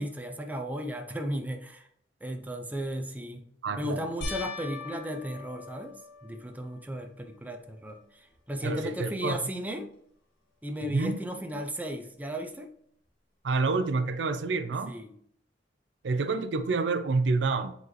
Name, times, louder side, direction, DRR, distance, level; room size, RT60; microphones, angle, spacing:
voice 1, 0.0-1.8 2.2-3.4 3.8-6.0 6.2-9.9 10.6-12.7 14.9-15.2, equal, 10° right, 4 dB, 0.6 m, -35 dB
voice 2, 3.6-4.1 8.6-9.4 10.9-11.2 13.4-15.0 16.0-17.7, right 3 dB, 90° right, 11 dB, 0.5 m, -28 dB
sound 1, 4.2-6.8 7.4-8.0 8.3-8.4 11.6-11.7, left 3 dB, 85° left, 1.5 m, -41 dB
7.8 x 4.0 x 3.1 m, 0.66 s
head